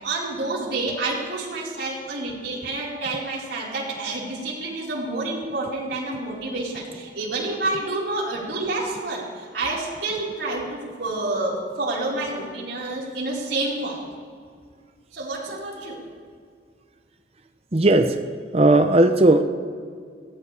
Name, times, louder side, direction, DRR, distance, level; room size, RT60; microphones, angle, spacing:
voice 1, 0.0-14.0 15.1-16.0, right 2 dB, 70° right, -6 dB, 5.0 m, -28 dB
voice 2, 17.7-18.2 18.5-19.4, right 2 dB, 35° right, 7 dB, 0.8 m, -16 dB
21.5 x 17.0 x 3.5 m, 2.1 s
head